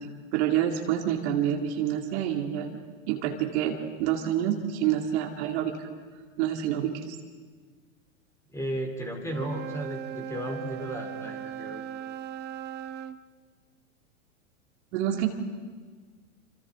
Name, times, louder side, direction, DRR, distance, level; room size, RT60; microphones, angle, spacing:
voice 1, 0.3-2.8 3.1-5.9 6.4-7.1 14.9-15.3, right 10 dB, 50° right, 3 dB, 2.4 m, -27 dB
voice 2, 8.5-11.8, right 1 dB, 5° left, 2 dB, 3.6 m, -34 dB
Wind instrument woodwind instrument, 9.2-13.2, right 9 dB, 25° right, 0.7 m, -38 dB
29.0 x 26.5 x 3.7 m, 1.5 s
hypercardioid pair, 115°, 41 cm